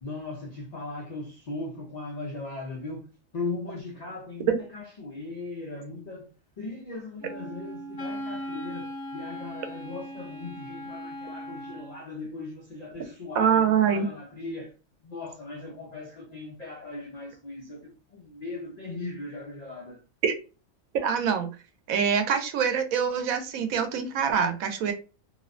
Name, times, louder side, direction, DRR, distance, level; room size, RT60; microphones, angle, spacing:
voice 1, 0.0-6.3 6.6-14.7 15.0-20.0, left 3 dB, 85° left, 0.3 m, -38 dB
Wind instrument woodwind instrument, 7.2-12.0, equal, 25° left, 0.6 m, -38 dB
voice 2, 13.4-14.1 20.2-20.3 20.9-21.5 21.9-24.9, right 7 dB, 80° right, 1.0 m, -24 dB
2.9 x 2.1 x 2.4 m
omnidirectional pair, 1.4 m